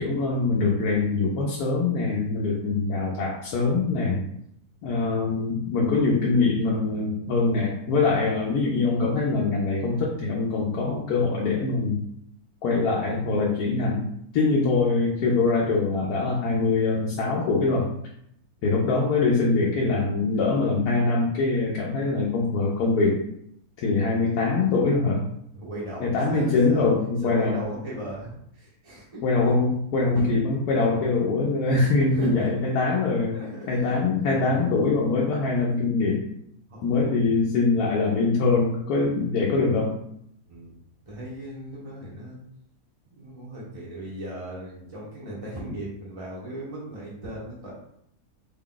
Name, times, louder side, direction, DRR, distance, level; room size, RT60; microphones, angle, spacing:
voice 1, 0.0-4.2 4.8-12.0 12.6-14.0 14.3-17.9 18.6-23.2 23.8-25.2 26.0-27.6 29.2-33.4 33.7-36.2 36.8-39.9, left 3 dB, 75° left, -3 dB, 1.1 m, -23 dB
voice 2, 25.5-26.8 27.2-29.2 30.1-30.2 31.8-32.5 33.3-34.7 36.7-36.9 40.5-40.8 41.1-42.4 43.1-47.7, right 1 dB, 35° right, -6 dB, 0.6 m, -38 dB
3.6 x 2.3 x 3.7 m, 0.71 s
omnidirectional pair, 1.7 m